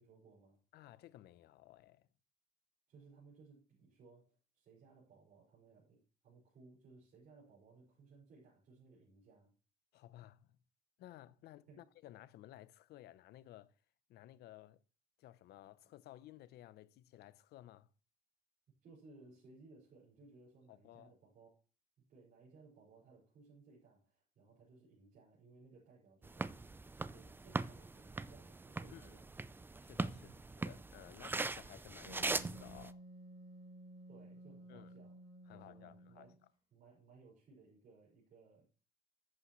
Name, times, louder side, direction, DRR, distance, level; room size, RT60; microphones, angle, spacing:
voice 1, 0.0-0.6 2.9-9.5 11.7-11.9 18.8-21.6 22.0-29.3 30.1-30.4 34.1-35.2 35.5-36.4 36.7-38.7, right 3 dB, 60° right, 5.7 m, -62 dB
voice 2, 0.7-2.1 9.9-10.6 11.0-13.7 14.1-14.8 15.2-17.9 20.7-21.2 28.9-29.1 29.8-30.3 30.6-33.0 34.7-34.9 35.5-36.3, left 14 dB, 75° left, 0.7 m, -56 dB
sound 1, 26.2-32.9, right 3 dB, 10° right, 0.4 m, -41 dB
Wind instrument woodwind instrument, 32.0-36.5, right 1 dB, 40° right, 4.1 m, -55 dB
11.0 x 8.5 x 3.1 m
cardioid pair, 110°, 17 cm